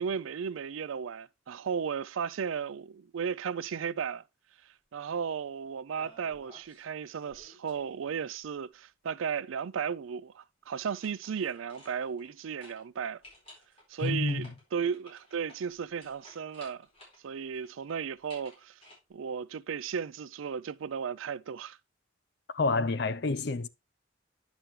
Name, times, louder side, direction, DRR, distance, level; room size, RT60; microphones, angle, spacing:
voice 1, 0.0-4.2 4.9-13.2 13.9-16.9 17.2-18.8 19.1-21.8, right 7 dB, 85° right, 0.4 m, -35 dB
sound 1, 6.0-6.9 7.2-8.5 10.7-12.4 12.6-12.8 13.2-17.2 17.5-19.0, left 1 dB, 30° left, 4.9 m, -55 dB
voice 2, 14.0-14.5 22.5-23.7, left 3 dB, 55° left, 0.6 m, -28 dB
10.5 x 6.2 x 3.2 m
head